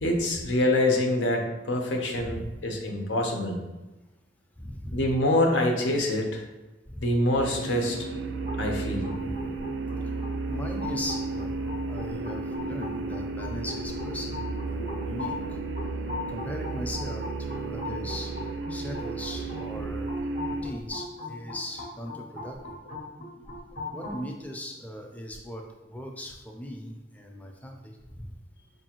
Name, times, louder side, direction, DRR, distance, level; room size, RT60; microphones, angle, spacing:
voice 1, 0.0-3.6 4.9-6.4 7.0-8.1 8.6-9.1 14.8-14.9, left 1 dB, 85° left, 2 dB, 0.7 m, -25 dB
voice 2, 2.2-2.5 4.6-5.1 6.9-7.0 9.1-9.5 10.5-15.6 16.3-18.3 18.7-20.1 20.5-22.7 23.9-27.8 28.2-28.3, left 1 dB, 10° left, 1 dB, 0.4 m, -38 dB
sound 1, 7.3-20.6, right 3 dB, 75° right, 0.4 m, -33 dB
sound 2, 8.5-24.2, left 2 dB, 45° left, 0.7 m, -40 dB
4.8 x 2.6 x 2.9 m, 1.1 s
head